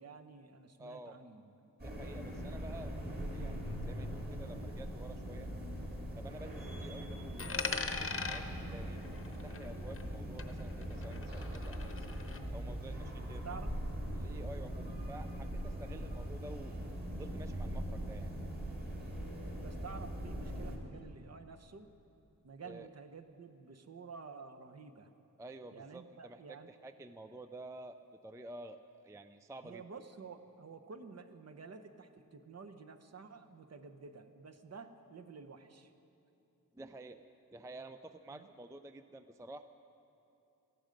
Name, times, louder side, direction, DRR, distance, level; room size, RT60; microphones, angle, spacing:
voice 1, 0.0-1.7 13.2-13.7 19.6-21.9 22.4-25.1 25.7-26.7 29.6-35.9 38.3-38.5, right 5 dB, 45° right, 7 dB, 0.8 m, -51 dB
voice 2, 0.8-1.1 1.8-2.9 3.3-5.5 6.1-12.2 12.5-13.6 14.1-16.7 17.1-18.3 22.6-22.9 25.4-28.0 28.2-29.8 36.7-37.2 37.5-39.6, right 2 dB, 10° right, 10 dB, 0.3 m, -50 dB
sound 1, 1.8-20.8, equal, 25° right, 2.1 m, -41 dB
Coin (dropping), 7.4-10.1 10.4-12.4, left 4 dB, 40° left, 0.9 m, -41 dB
18.5 x 14.5 x 5.2 m, 2.9 s
wide cardioid pair, 165°, 35 cm